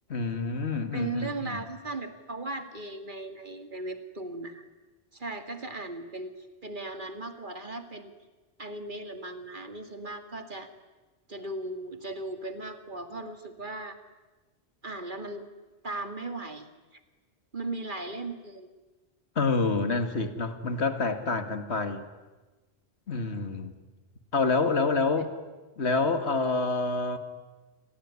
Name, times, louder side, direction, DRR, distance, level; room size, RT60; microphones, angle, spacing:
voice 1, 0.1-1.6 19.4-22.0 23.1-23.7 24.3-25.3 25.8-27.2, left 3 dB, 80° left, 9 dB, 2.2 m, -27 dB
voice 2, 0.9-4.7 5.1-8.1 8.6-10.7 11.3-14.0 14.8-15.4 15.8-16.7 16.9-17.0 17.5-18.7, right 2 dB, 50° right, 7 dB, 2.4 m, -37 dB
29.0 x 21.0 x 9.7 m, 1.2 s
omnidirectional pair, 1.1 m